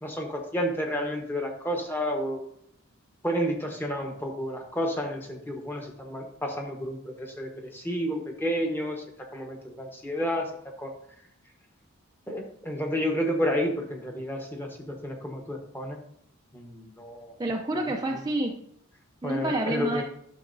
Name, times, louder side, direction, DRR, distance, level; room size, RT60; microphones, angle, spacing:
voice 1, 0.0-2.5 3.2-9.0 9.3-10.5 10.8-10.9 12.3-16.0 16.5-17.3 17.7-17.9 19.2-20.0, equal, 10° left, 2 dB, 1.1 m, -31 dB
voice 2, 17.4-18.6 19.2-20.0, right 1 dB, 20° right, 1 dB, 0.5 m, -28 dB
11.0 x 6.3 x 2.6 m, 0.71 s
head